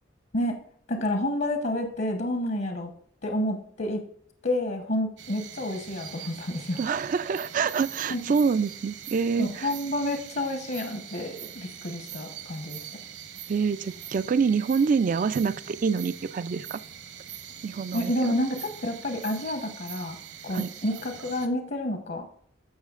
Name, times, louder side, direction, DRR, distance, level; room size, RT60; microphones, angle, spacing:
voice 1, 0.9-2.9 3.2-4.0 4.4-6.8 8.1-8.2 9.4-12.9 17.9-20.2 20.4-22.3, left 1 dB, 60° left, 4 dB, 1.0 m, -29 dB
sound 1, 5.2-21.5, right 9 dB, 65° right, 1.0 m, -43 dB
voice 2, 6.8-9.7 13.5-16.8 17.6-18.4 20.5-20.7, right 5 dB, 45° right, 16 dB, 0.3 m, -26 dB
14.5 x 5.7 x 2.4 m, 0.62 s
head